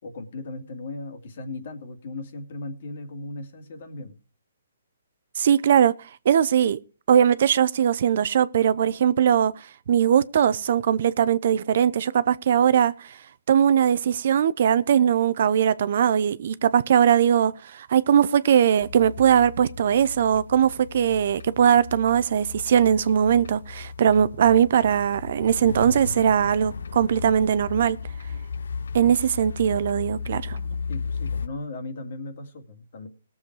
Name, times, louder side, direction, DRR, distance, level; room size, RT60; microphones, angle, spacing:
voice 1, 0.0-4.2 30.9-33.1, left 2 dB, 55° left, 2.4 m, -37 dB
voice 2, 5.4-5.9 6.2-6.8 7.1-9.5 9.9-13.2 13.5-28.0 28.9-30.6, right 8 dB, 55° right, 0.6 m, -20 dB
sound 1, 18.8-31.5, left 5 dB, 80° left, 0.7 m, -35 dB
18.5 x 7.3 x 4.7 m
hypercardioid pair, 150°, 0 cm